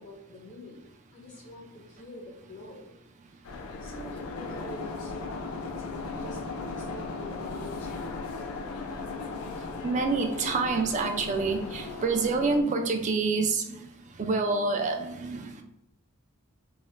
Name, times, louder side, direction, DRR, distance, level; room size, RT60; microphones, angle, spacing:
voice 1, 0.0-2.9 3.8-8.2, left 1 dB, 30° left, -4 dB, 0.5 m, -46 dB
sound 1, 3.4-12.6, left 3 dB, 85° left, 0.4 m, -37 dB
voice 2, 9.8-13.8 14.2-15.6, right 4 dB, 35° right, 5 dB, 0.3 m, -27 dB
4.0 x 2.1 x 2.4 m, 0.80 s
head